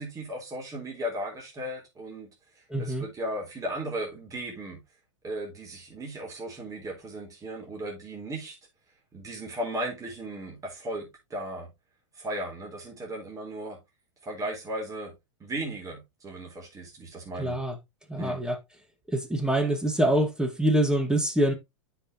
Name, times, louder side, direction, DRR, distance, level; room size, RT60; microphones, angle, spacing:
voice 1, 0.0-2.3 2.8-4.8 5.2-8.6 9.1-11.7 12.2-13.8 14.2-15.1 15.4-17.6 18.2-18.4, right 1 dB, 20° right, 4.3 m, -36 dB
voice 2, 2.7-3.1 17.4-17.8 18.1-18.6 19.1-21.5, right 1 dB, 5° right, 2.0 m, -25 dB
9.7 x 6.2 x 3.0 m
hypercardioid pair, 105°, 16 cm